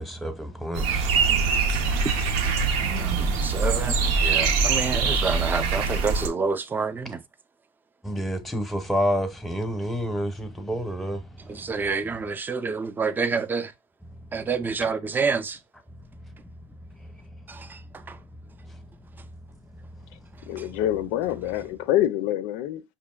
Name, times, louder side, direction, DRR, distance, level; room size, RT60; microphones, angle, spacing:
voice 1, 0.0-2.1 2.6-3.5 8.0-11.7 17.0-17.2 18.7-18.8, equal, ahead, 0.8 m, -30 dB
sound 1, 0.7-6.3, right 5 dB, 85° right, 0.7 m, -23 dB
voice 2, 2.8-7.2 11.5-13.7 14.3-15.6 17.5-17.8 18.1-18.2 20.6-20.7, right 5 dB, 15° right, 0.4 m, -28 dB
voice 3, 20.5-22.8, left 12 dB, 85° left, 0.5 m, -26 dB
5.1 x 2.7 x 2.3 m
cardioid pair, 110°, 11 cm